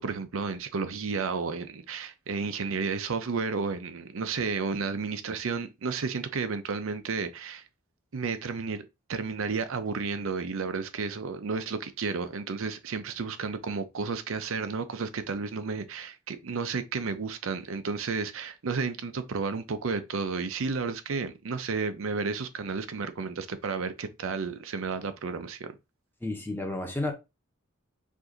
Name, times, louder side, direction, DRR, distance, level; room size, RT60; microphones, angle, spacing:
voice 1, 0.0-7.6 8.1-25.8, right 4 dB, 70° right, 0.6 m, -32 dB
voice 2, 26.2-27.1, left 2 dB, 10° left, 1.0 m, -31 dB
4.9 x 2.6 x 3.8 m
head